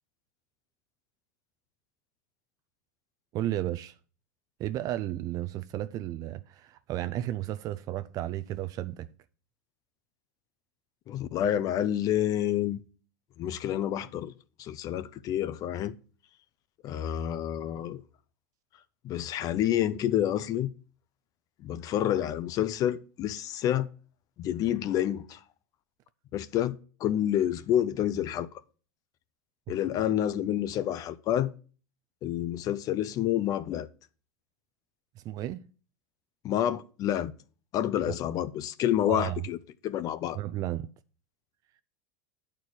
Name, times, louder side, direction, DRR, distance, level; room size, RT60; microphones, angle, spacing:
voice 1, 3.3-4.0 4.6-9.1 35.2-35.7 39.0-39.4 40.4-40.9, right 14 dB, 40° right, 0.5 m, -33 dB
voice 2, 11.1-12.8 13.4-14.3 14.6-15.9 16.8-18.0 19.0-20.7 21.6-23.9 24.4-25.4 26.3-28.5 29.7-31.5 32.2-33.9 36.4-37.3 37.7-39.6 39.8-40.4, left 11 dB, 40° left, 0.6 m, -28 dB
9.4 x 4.5 x 6.1 m
hypercardioid pair, 110°, 9 cm